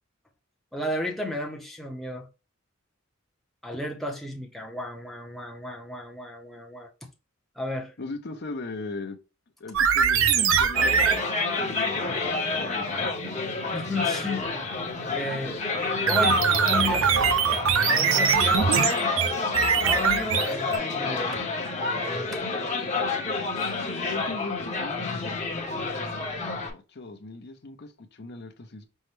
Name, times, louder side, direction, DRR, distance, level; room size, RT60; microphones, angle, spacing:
voice 1, 0.7-2.3 3.6-7.1 7.6-7.9 13.7-14.5 15.1-15.6 16.0-17.1 17.8-19.1 19.8-21.4 22.0-22.4 23.6-23.7, left 1 dB, ahead, 0.6 m, -33 dB
voice 2, 8.0-9.2 9.6-11.2 11.6-13.2 23.8-25.7 26.7-28.8, left 3 dB, 55° left, 0.7 m, -39 dB
sound 1, 9.7-11.2 16.1-20.8, right 7 dB, 70° right, 0.6 m, -22 dB
sound 2, 10.7-26.7, left 3 dB, 35° left, 0.9 m, -29 dB
5.4 x 2.2 x 3.1 m
head